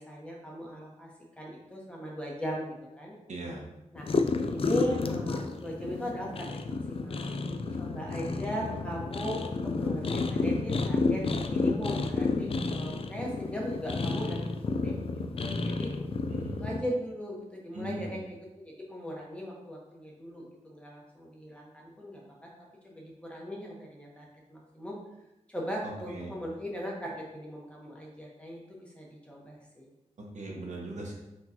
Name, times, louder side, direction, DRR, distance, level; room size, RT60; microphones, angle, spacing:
voice 1, 0.0-3.2 3.9-4.1 4.5-7.3 7.8-14.4 14.8-14.9 15.4-15.9 16.6-22.5 22.8-25.0 25.5-29.9, equal, 10° left, -3 dB, 1.1 m, -38 dB
voice 2, 3.3-3.7 16.3-16.7 17.7-18.1 26.1-26.3 30.2-31.1, right 1 dB, 70° right, -1 dB, 1.1 m, -39 dB
sound 1, 4.0-16.8, left 3 dB, 50° left, 0.3 m, -31 dB
4.6 x 3.9 x 2.8 m, 0.93 s
wide cardioid pair, 110°, 13 cm